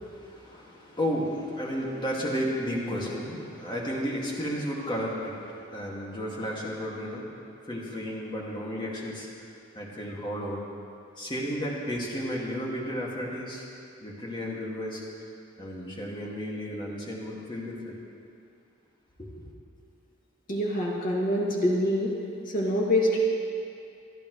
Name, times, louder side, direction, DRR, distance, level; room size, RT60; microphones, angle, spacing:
voice 1, 0.0-9.3 9.7-10.6 11.2-13.6 14.0-15.0 15.6-18.0 19.2-19.3, equal, 25° left, -4 dB, 2.3 m, -33 dB
voice 2, 20.5-22.1 22.5-23.2, left 1 dB, 45° left, -4 dB, 2.3 m, -25 dB
27.0 x 10.5 x 3.3 m, 2.5 s
head